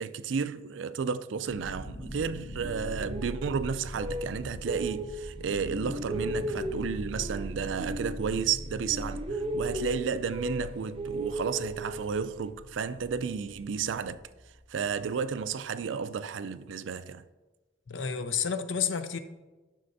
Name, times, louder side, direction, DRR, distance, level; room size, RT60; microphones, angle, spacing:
voice 1, 0.0-14.2 14.7-17.2, right 6 dB, 80° right, 0.4 m, -32 dB
sound 1, 1.5-15.4, equal, 70° left, 1.1 m, -42 dB
sound 2, 2.6-5.4 5.7-8.7 8.9-12.4, equal, 30° right, 0.6 m, -36 dB
voice 2, 17.9-19.2, left 7 dB, 90° left, 0.6 m, -30 dB
11.0 x 6.5 x 2.7 m
head